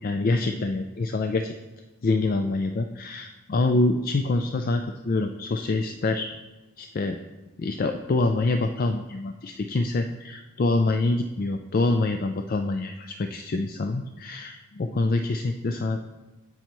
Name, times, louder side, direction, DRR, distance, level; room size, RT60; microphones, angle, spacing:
voice 1, 0.0-1.5 2.0-6.3 6.8-7.2 7.6-16.0, left 2 dB, 40° left, 6 dB, 0.4 m, -26 dB
15.5 x 5.6 x 3.0 m, 1.1 s
head